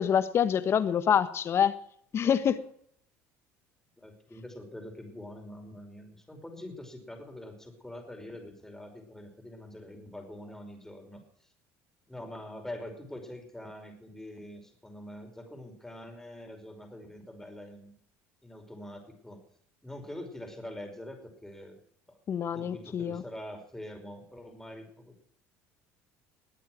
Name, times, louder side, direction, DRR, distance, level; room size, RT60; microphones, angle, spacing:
voice 1, 0.0-1.7 2.1-2.7 22.3-23.2, left 8 dB, 45° left, 1.4 m, -26 dB
voice 2, 4.0-11.5 12.1-18.0 18.4-19.4 19.8-21.8 22.1-22.2 22.5-25.2, left 1 dB, 5° left, 5.4 m, -44 dB
21.0 x 8.4 x 6.2 m
supercardioid pair, 95°, 6 cm